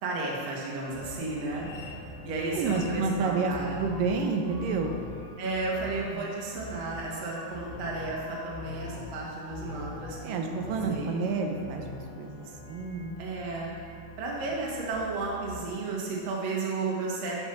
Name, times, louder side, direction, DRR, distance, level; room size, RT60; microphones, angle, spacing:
voice 1, 0.0-1.7 2.3-3.8 5.4-11.2 13.2-13.7 14.2-17.4, right 3 dB, 55° right, -3 dB, 2.4 m, -33 dB
sound 1, 0.9-15.7, left 2 dB, 60° left, 0.7 m, -43 dB
voice 2, 2.6-5.0 6.1-6.2 10.2-12.3 12.7-13.2, right 4 dB, 90° right, 3 dB, 2.5 m, -29 dB
9.4 x 5.4 x 6.0 m, 2.1 s
omnidirectional pair, 3.8 m